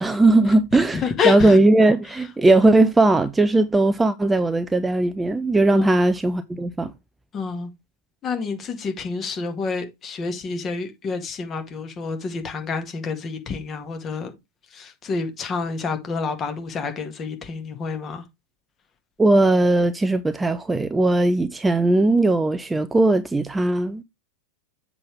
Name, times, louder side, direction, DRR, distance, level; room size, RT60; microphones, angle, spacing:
voice 1, 0.0-6.9 19.2-24.0, right 2 dB, 10° right, 0.5 m, -18 dB
voice 2, 0.9-1.6 5.7-6.0 7.3-7.7 8.2-14.3 14.7-18.2, left 5 dB, 25° left, 1.9 m, -28 dB
7.6 x 6.0 x 3.4 m
figure-of-eight pair, 90°, 0 cm